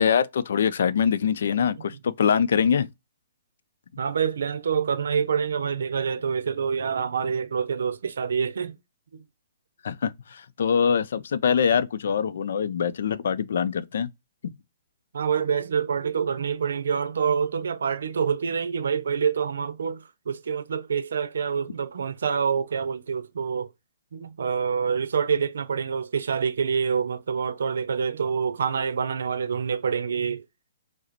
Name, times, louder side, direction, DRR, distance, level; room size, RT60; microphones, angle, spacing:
voice 1, 0.0-2.9 9.8-14.1 14.4-14.5, left 7 dB, 65° left, 0.5 m, -23 dB
voice 2, 4.0-8.8 9.1-9.2 15.1-23.7 24.1-30.4, right 6 dB, 80° right, 0.6 m, -26 dB
4.8 x 2.1 x 3.0 m
hypercardioid pair, 165°, 0 cm